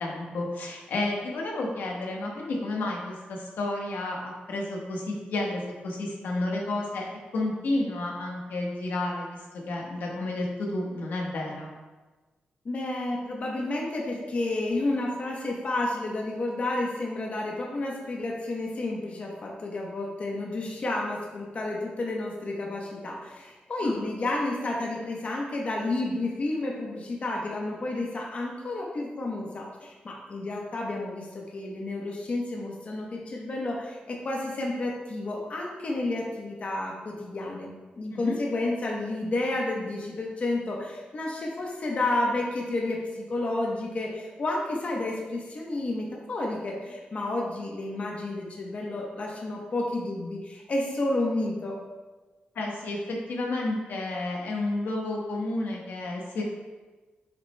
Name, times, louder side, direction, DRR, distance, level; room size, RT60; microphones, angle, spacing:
voice 1, 0.0-7.0 7.3-9.4 9.7-11.7 23.8-23.9 38.1-38.4 52.5-56.4, left 2 dB, 85° left, -1 dB, 1.2 m, -31 dB
voice 2, 12.6-37.7 38.0-51.8, left 2 dB, 40° left, -1 dB, 0.9 m, -31 dB
7.4 x 5.8 x 2.2 m, 1.3 s
wide cardioid pair, 130°, 3 cm